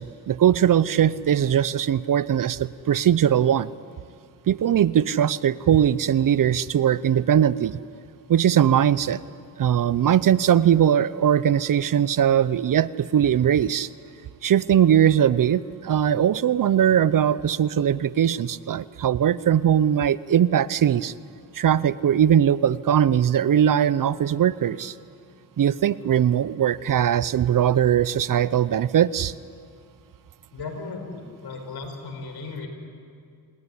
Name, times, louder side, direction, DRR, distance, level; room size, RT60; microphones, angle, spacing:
voice 1, 0.0-3.7 4.5-7.8 8.3-9.2 9.6-13.9 14.4-21.1 21.5-24.9 25.6-29.3, right 9 dB, 50° right, 18 dB, 0.7 m, -20 dB
voice 2, 30.5-32.7, left 4 dB, 65° left, 5 dB, 5.3 m, -36 dB
28.5 x 19.5 x 10.0 m, 2.3 s
cardioid pair, 90°, 41 cm